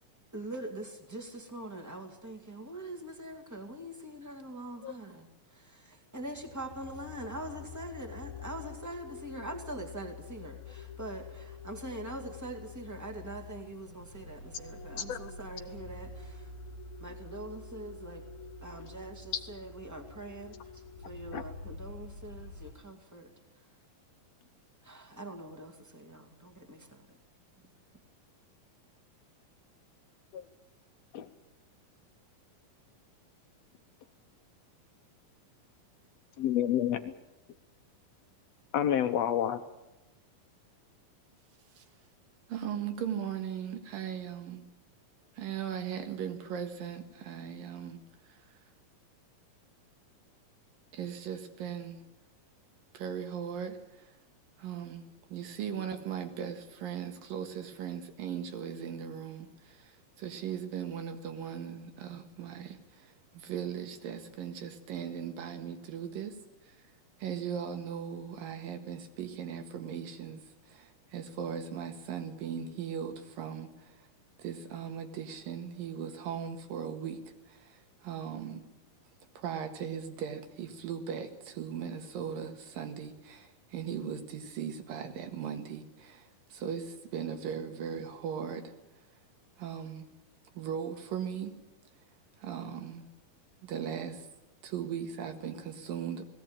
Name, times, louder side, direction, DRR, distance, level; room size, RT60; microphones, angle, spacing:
voice 1, 0.3-16.5 17.0-18.2 18.6-23.3 24.8-27.2, right 1 dB, 5° right, 4 dB, 1.5 m, -43 dB
sound 1, 6.2-22.7, left 4 dB, 45° left, 2.0 m, -47 dB
voice 2, 36.4-37.1 38.7-39.6, left 10 dB, 75° left, 9 dB, 1.5 m, -29 dB
voice 3, 42.5-44.7 45.4-48.4 50.9-52.0 52.9-54.1 54.6-66.4 66.6-66.9 67.2-74.1 74.4-78.6 79.4-88.7 89.6-90.1 90.6-91.6 92.4-93.1 93.6-94.3 94.6-96.3, right 8 dB, 75° right, 7 dB, 3.4 m, -38 dB
19.5 x 16.5 x 8.9 m, 0.98 s
omnidirectional pair, 4.0 m